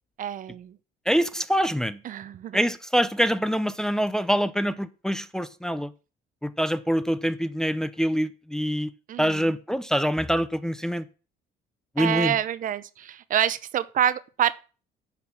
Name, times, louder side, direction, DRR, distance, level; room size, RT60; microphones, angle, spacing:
voice 1, 0.2-0.8 2.0-2.6 9.1-9.5 12.0-14.5, right 10 dB, 55° right, 0.7 m, -27 dB
voice 2, 1.1-2.0 2.5-5.9 6.4-8.9 9.2-11.1 12.0-12.4, equal, 5° left, 0.6 m, -25 dB
9.9 x 6.0 x 5.9 m
cardioid pair, 110°, 17 cm